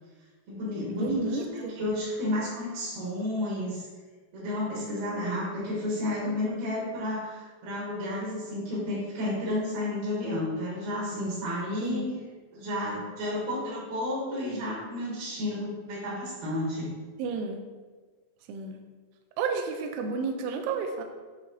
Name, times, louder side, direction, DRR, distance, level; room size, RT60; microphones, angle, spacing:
voice 1, 0.5-3.9 4.3-12.1 12.5-16.9, left 1 dB, 65° right, -7 dB, 2.7 m, -31 dB
voice 2, 1.0-1.8 11.8-12.1 17.2-17.6 18.5-18.8 19.4-21.0, right 4 dB, 85° right, 4 dB, 2.7 m, -31 dB
8.3 x 3.0 x 3.8 m, 1.4 s
omnidirectional pair, 6.0 m